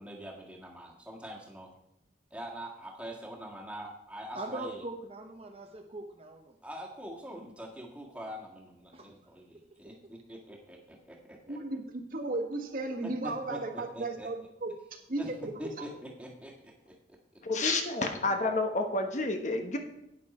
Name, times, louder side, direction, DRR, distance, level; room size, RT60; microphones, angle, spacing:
voice 1, 0.0-1.7 2.3-4.8 6.6-11.6 13.0-14.3 15.2-15.3 15.6-17.0, equal, 5° right, -2 dB, 1.7 m, -44 dB
voice 2, 4.3-6.5 8.9-9.1, right 2 dB, 35° right, 2 dB, 0.7 m, -41 dB
voice 3, 11.5-14.7 15.1-15.9, right 2 dB, 50° right, 3 dB, 1.4 m, -35 dB
voice 4, 17.4-19.8, left 2 dB, 40° left, 5 dB, 1.0 m, -29 dB
11.0 x 9.2 x 4.3 m, 0.84 s
head